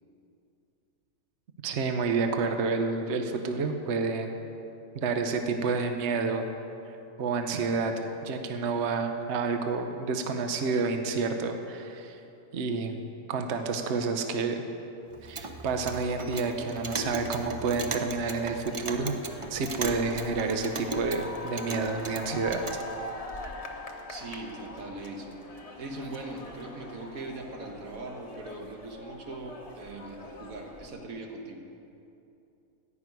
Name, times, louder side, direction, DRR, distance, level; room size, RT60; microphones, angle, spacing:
voice 1, 1.6-4.3 4.9-6.5 7.2-12.2 12.5-13.0 13.3-14.6 15.2-19.2 19.5-22.6, right 4 dB, 60° right, 6 dB, 1.1 m, -29 dB
Clock, 15.1-22.8, right 3 dB, 35° right, 0.5 m, -38 dB
sound 1, 16.6-30.9, left 1 dB, 30° left, 1.1 m, -43 dB
voice 2, 24.1-31.7, right 2 dB, 90° right, 2 dB, 1.7 m, -40 dB
14.0 x 6.1 x 9.4 m, 2.7 s
omnidirectional pair, 1.4 m